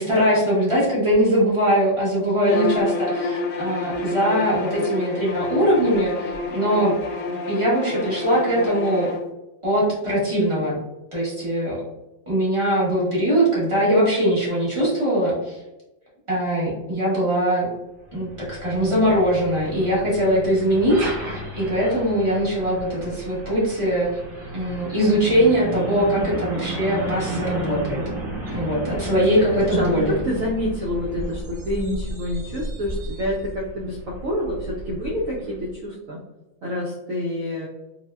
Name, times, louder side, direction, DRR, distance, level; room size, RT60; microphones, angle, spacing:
voice 1, 0.0-7.0 7.5-9.1 9.6-10.8 11.1-11.8 12.3-15.6 16.3-17.7 18.1-24.2 24.5-28.0 28.5-30.2, equal, 30° right, -8 dB, 0.5 m, -21 dB
Bowed string instrument, 2.4-9.2, left 3 dB, 90° left, 1.4 m, -28 dB
Truck, 18.1-35.7, right 1 dB, 50° right, 1.4 m, -33 dB
voice 2, 28.9-36.2 36.6-37.7, left 1 dB, 80° right, -4 dB, 0.7 m, -28 dB
4.2 x 2.1 x 2.2 m, 0.97 s
omnidirectional pair, 2.1 m